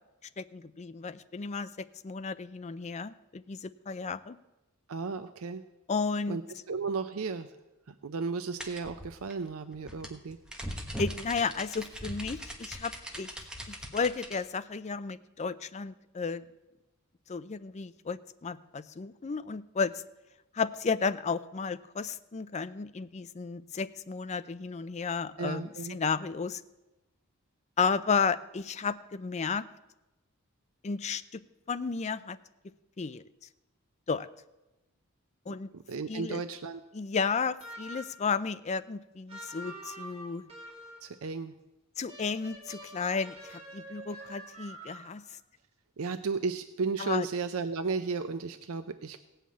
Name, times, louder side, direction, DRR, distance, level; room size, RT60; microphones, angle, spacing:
voice 1, 0.4-4.4 5.9-6.4 11.0-13.3 13.7-16.4 17.3-19.9 20.5-26.6 27.8-29.6 30.8-31.4 31.7-32.4 33.0-33.2 34.1-34.3 35.5-35.7 36.1-36.4 36.9-40.5 42.0-45.2 47.0-47.3, left 5 dB, 30° left, 13 dB, 0.5 m, -33 dB
voice 2, 4.9-5.6 6.3-6.4 6.7-7.5 7.9-10.4 25.4-26.0 35.7-36.8 41.0-41.5 46.0-49.2, right 4 dB, 80° right, 9 dB, 0.5 m, -34 dB
sound 1, 8.6-14.4, equal, 5° right, 1.3 m, -40 dB
sound 2, 37.6-38.3 39.3-41.1 42.1-45.3, right 1 dB, 30° right, 2.3 m, -46 dB
17.0 x 5.7 x 8.4 m, 1.0 s
head